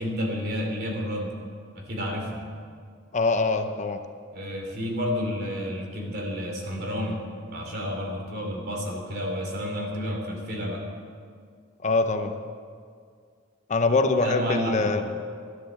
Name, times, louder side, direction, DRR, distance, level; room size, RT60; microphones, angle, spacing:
voice 1, 0.0-1.3 1.7-2.4 4.3-7.2 7.5-10.8 14.0-15.0, equal, 55° right, 1 dB, 2.9 m, -30 dB
voice 2, 3.1-4.0 11.8-12.4 13.7-15.0, left 3 dB, 35° left, 8 dB, 0.7 m, -23 dB
13.0 x 11.0 x 7.4 m, 2.1 s
head